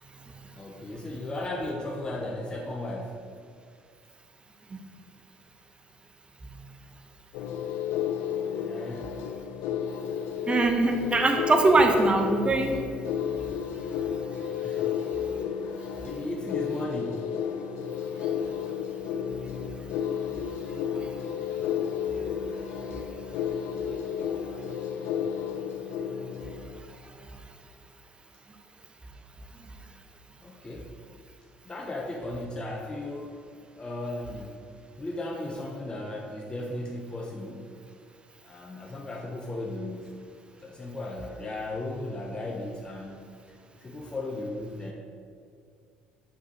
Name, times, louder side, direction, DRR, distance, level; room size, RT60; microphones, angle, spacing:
voice 1, 0.6-3.3 8.6-9.1 14.6-14.9 16.0-17.3 30.4-31.0 31.6-33.4 33.7-34.6 35.0-37.8 38.4-40.3 40.6-43.2 43.8-44.9, left 1 dB, 20° left, -1 dB, 0.7 m, -36 dB
sound 1, 7.3-26.8, left 8 dB, 70° left, 0.3 m, -32 dB
voice 2, 10.5-12.8, right 2 dB, 25° right, 4 dB, 0.8 m, -22 dB
6.8 x 6.7 x 2.9 m, 2.2 s
hypercardioid pair, 65°, 4 cm